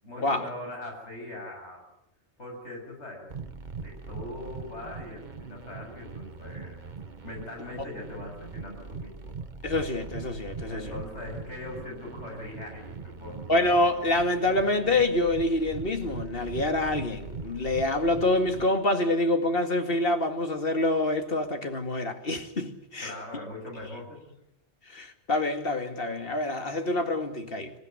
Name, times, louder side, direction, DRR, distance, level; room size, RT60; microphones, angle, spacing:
voice 1, 0.0-1.8 2.4-3.3 3.8-6.8 7.2-9.3 10.7-13.5 23.0-24.2, left 1 dB, 85° left, 7.7 m, -40 dB
sound 1, 3.3-18.7, right 4 dB, 45° right, 1.4 m, -41 dB
voice 2, 9.6-10.8 13.5-23.1 24.9-27.7, left 2 dB, 55° left, 2.4 m, -26 dB
26.5 x 15.0 x 9.4 m
omnidirectional pair, 1.1 m